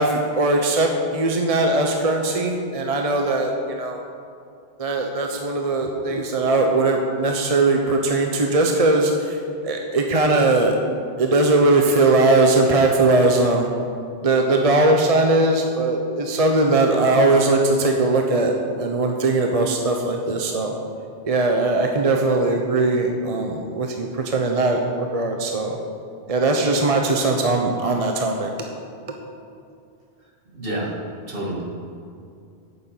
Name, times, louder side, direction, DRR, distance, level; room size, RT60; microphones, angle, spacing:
voice 1, 0.0-4.0 4.8-10.8 11.2-13.7 14.2-20.7 21.2-25.8 26.3-28.5, right 2 dB, 35° right, 2 dB, 0.8 m, -20 dB
voice 2, 30.5-30.9 31.3-31.7, right 1 dB, 55° right, -3 dB, 2.3 m, -28 dB
9.4 x 7.0 x 8.5 m, 2.5 s
omnidirectional pair, 1.1 m